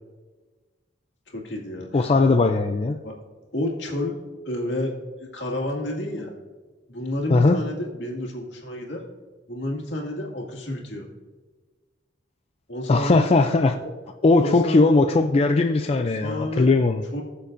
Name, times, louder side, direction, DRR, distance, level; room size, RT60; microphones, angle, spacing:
voice 1, 1.3-2.3 3.0-3.2 3.5-4.2 4.5-6.3 6.9-9.0 9.5-11.1 12.7-13.3 13.8-13.9 14.4-15.0 15.9-16.8 17.1-17.2, left 1 dB, 70° left, 0 dB, 2.1 m, -30 dB
voice 2, 1.9-2.9 7.3-7.6 12.9-13.8 14.2-17.0, left 3 dB, 35° left, 6 dB, 0.4 m, -19 dB
19.5 x 6.9 x 2.6 m, 1.3 s
head